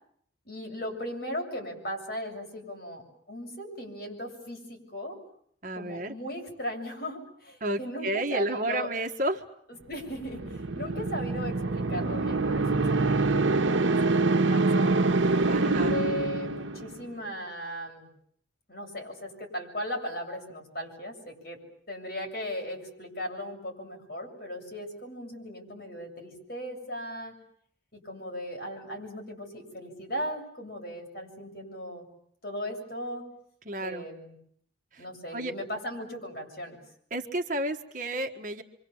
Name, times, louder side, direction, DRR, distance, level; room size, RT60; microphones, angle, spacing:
voice 1, 0.5-3.0 3.3-5.2 5.7-8.9 9.9-15.0 15.6-18.1 18.7-21.6 21.9-27.4 27.9-32.1 32.4-33.3 33.8-34.3 35.0-36.8, equal, 50° left, 1 dB, 7.7 m, -37 dB
voice 2, 5.6-6.1 7.6-9.4 15.5-15.9 33.6-34.1 34.9-35.0 35.3-35.5 37.1-38.6, right 1 dB, 45° right, 5 dB, 1.5 m, -31 dB
sound 1, 10.1-17.1, right 3 dB, 90° right, 1.1 m, -25 dB
28.5 x 25.0 x 7.2 m, 0.67 s
head